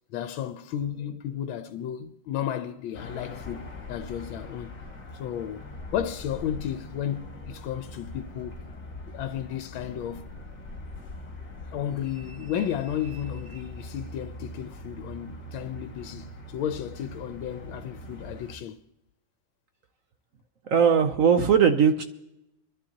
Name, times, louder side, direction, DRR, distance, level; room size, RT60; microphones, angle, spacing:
voice 1, 0.1-4.8 5.1-5.7 5.9-8.6 9.1-10.2 11.7-18.8, left 10 dB, 80° left, 1.4 m, -33 dB
sound 1, 2.9-18.6, left 1 dB, 35° left, 2.4 m, -42 dB
voice 2, 20.7-22.0, right 7 dB, 70° right, 0.7 m, -19 dB
24.5 x 12.0 x 2.8 m
omnidirectional pair, 2.2 m